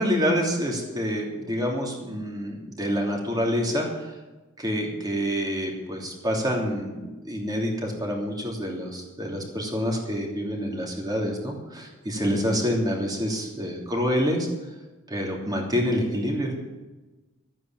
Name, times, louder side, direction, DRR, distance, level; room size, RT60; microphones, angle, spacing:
voice 1, 0.0-4.1 4.6-14.5 15.1-16.5, equal, 20° right, 0 dB, 2.9 m, -27 dB
13.0 x 9.3 x 7.4 m, 1.2 s
head